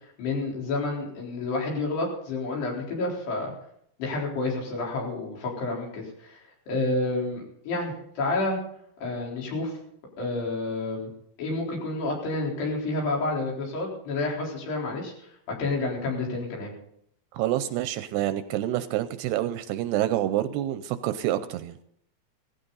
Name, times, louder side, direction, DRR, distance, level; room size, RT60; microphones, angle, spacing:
voice 1, 0.2-3.5 4.0-8.6 9.0-9.8 10.2-11.1 11.4-16.7, left 2 dB, 70° left, -2 dB, 6.0 m, -29 dB
voice 2, 17.3-21.8, right 13 dB, 80° right, 11 dB, 2.6 m, -27 dB
17.0 x 15.5 x 4.0 m, 0.68 s
omnidirectional pair, 5.1 m